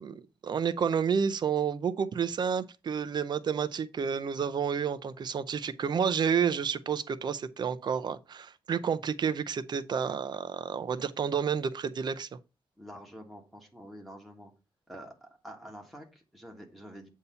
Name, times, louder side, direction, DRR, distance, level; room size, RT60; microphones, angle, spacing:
voice 1, 0.0-12.3, right 7 dB, 50° right, 0.5 m, -30 dB
voice 2, 12.8-14.5 14.9-17.1, equal, ahead, 1.4 m, -47 dB
8.2 x 2.8 x 5.4 m
wide cardioid pair, 175°, 9 cm